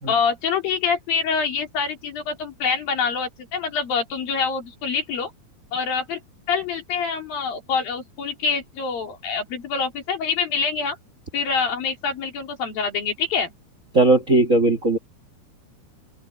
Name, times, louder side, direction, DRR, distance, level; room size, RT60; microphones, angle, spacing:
voice 1, 0.1-5.3 5.7-6.2 6.5-11.0 11.3-13.5, left 5 dB, 75° left, 5.4 m, -25 dB
voice 2, 13.9-15.0, right 2 dB, 40° right, 1.1 m, -17 dB
open air
omnidirectional pair, 4.2 m